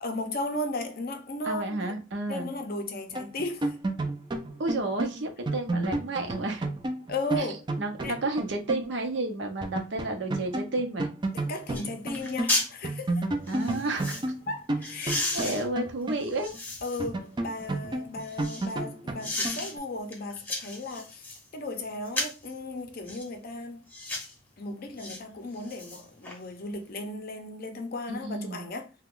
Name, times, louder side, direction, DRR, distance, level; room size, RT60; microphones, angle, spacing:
voice 1, 0.0-1.9 2.3-3.8 7.1-7.6 8.0-8.2 11.3-13.3 14.5-15.3 16.8-23.8 24.6-28.9, left 2 dB, 50° left, 0.5 m, -35 dB
voice 2, 1.4-2.5 4.6-6.7 7.4-7.5 7.8-11.1 13.5-14.2 15.3-16.5 28.1-28.6, right 2 dB, 60° right, 0.7 m, -31 dB
sound 1, 3.1-8.9 9.2-9.3 9.6-12.5 12.8-16.6 17.0-19.8, right 2 dB, 25° right, 0.4 m, -32 dB
sound 2, 11.2-11.3 11.7-11.9 12.1-12.7 13.5-14.3 14.8-17.1 17.6-18.7 19.2-19.7 20.1-21.4 22.1-22.5 23.1-23.3 23.9-24.3 25.0-25.2 25.5-26.4 26.7-26.8, left 2 dB, 10° left, 0.8 m, -34 dB
2.9 x 2.2 x 3.6 m
head